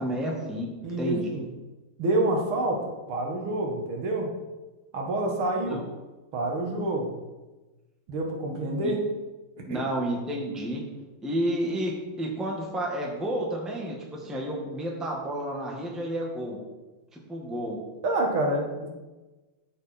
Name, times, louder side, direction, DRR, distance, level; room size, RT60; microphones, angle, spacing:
voice 1, 0.0-1.4 5.6-5.8 8.8-9.0 9.7-10.8 11.2-16.6 17.1-17.8, right 1 dB, ahead, -2 dB, 1.2 m, -31 dB
voice 2, 0.8-1.5 2.0-2.8 3.1-4.3 4.9-5.8 6.3-7.1 8.1-9.0 9.7-9.8 18.0-18.9, right 2 dB, 80° right, 1 dB, 2.3 m, -27 dB
13.5 x 4.7 x 4.3 m, 1.2 s
omnidirectional pair, 2.3 m